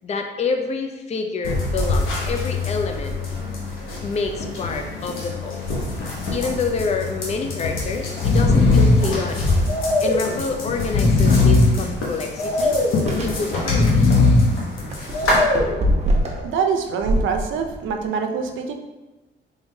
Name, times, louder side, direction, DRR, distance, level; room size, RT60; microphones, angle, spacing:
voice 1, 0.0-3.2 4.0-5.7 6.3-9.5 10.0-12.8 13.2-14.1, left 4 dB, 35° left, 5 dB, 0.4 m, -27 dB
sound 1, 1.4-15.4, left 2 dB, 85° left, 1.0 m, -27 dB
Breathing, 6.0-6.3 6.7-6.8 7.6-7.8 8.1-9.1 9.7-10.3 10.8-11.8 12.4-13.0 13.5-14.5 15.1-15.8, left 3 dB, 60° left, 0.8 m, -17 dB
sound 2, 11.1-11.2 11.7-11.9 13.0-13.4 14.7-16.5 17.0-18.0, equal, 35° right, 0.8 m, -24 dB
voice 2, 16.3-18.7, right 6 dB, 80° right, 5 dB, 0.5 m, -25 dB
3.6 x 3.4 x 2.6 m, 1.1 s
cardioid pair, 90°, 20 cm